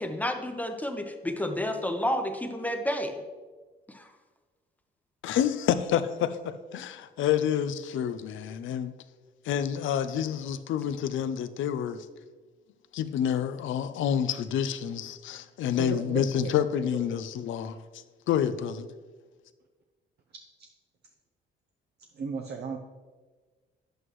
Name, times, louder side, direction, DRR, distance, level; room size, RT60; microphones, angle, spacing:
voice 1, 0.0-3.2 3.9-4.1, left 1 dB, 10° left, 5 dB, 0.8 m, -30 dB
voice 2, 5.2-8.9 9.4-12.1 12.9-17.8 18.3-18.9, left 9 dB, 75° left, 13 dB, 0.5 m, -28 dB
voice 3, 15.8-17.2 20.6-20.7 22.1-22.8, right 5 dB, 55° right, 1 dB, 0.7 m, -36 dB
9.6 x 8.0 x 3.1 m, 1.4 s
cardioid pair, 90°, 20 cm